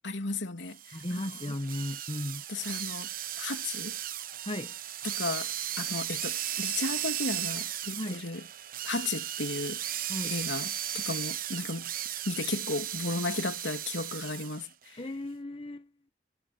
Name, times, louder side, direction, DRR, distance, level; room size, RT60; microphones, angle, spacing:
voice 1, 0.0-1.5 2.5-3.1 3.4-4.0 5.0-8.5 8.8-11.9 12.2-15.0, left 3 dB, 85° left, 3.0 m, -35 dB
sound 1, 0.7-14.7, right 11 dB, 50° right, 1.0 m, -36 dB
voice 2, 0.9-2.4 4.4-4.8 8.0-8.2 10.1-10.3 15.0-15.9, left 1 dB, 30° left, 1.4 m, -35 dB
head